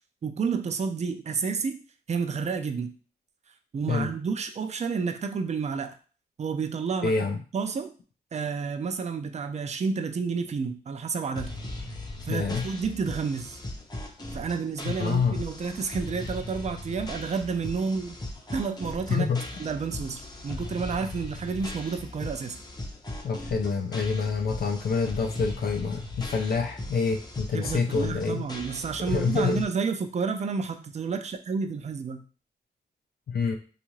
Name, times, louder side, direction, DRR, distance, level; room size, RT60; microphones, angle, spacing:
voice 1, 0.2-1.8 2.1-2.9 3.7-6.0 6.4-7.1 7.5-7.9 8.3-11.5 12.3-13.6 14.3-18.2 18.5-19.3 19.6-22.6 27.5-32.2, right 5 dB, 40° right, 7 dB, 0.4 m, -30 dB
voice 2, 7.0-7.4 12.3-12.7 15.0-15.4 19.1-19.4 23.2-28.5 29.1-29.7 33.3-33.6, left 5 dB, 65° left, 3 dB, 0.5 m, -27 dB
sound 1, 11.4-29.6, left 2 dB, 25° left, 0.7 m, -39 dB
2.6 x 2.4 x 3.0 m, 0.39 s
cardioid pair, 55°, 17 cm